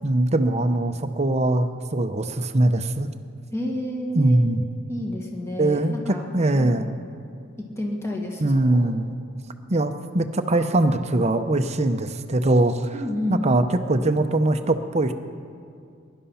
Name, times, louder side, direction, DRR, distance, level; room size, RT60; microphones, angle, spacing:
voice 1, 0.0-3.1 4.1-4.6 5.6-6.9 8.4-9.2 9.7-12.9 13.3-15.1, right 2 dB, 35° right, 8 dB, 0.7 m, -22 dB
voice 2, 3.5-4.4 4.9-6.8 7.8-8.9 12.9-13.4, left 1 dB, 15° left, 0 dB, 1.9 m, -30 dB
21.5 x 11.5 x 5.7 m, 2.3 s
head